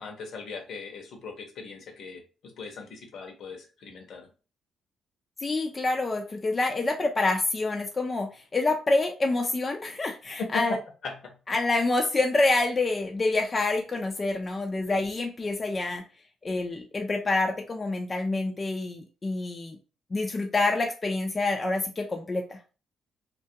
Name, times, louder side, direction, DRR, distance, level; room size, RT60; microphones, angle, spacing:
voice 1, 0.0-4.3 11.0-11.3, left 4 dB, 70° left, 3 dB, 0.7 m, -41 dB
voice 2, 5.4-10.8 11.5-16.0 16.4-19.8 20.1-22.6, left 2 dB, 30° left, 3 dB, 0.3 m, -27 dB
2.3 x 2.2 x 2.7 m, 0.35 s
cardioid pair, 90°, 0 cm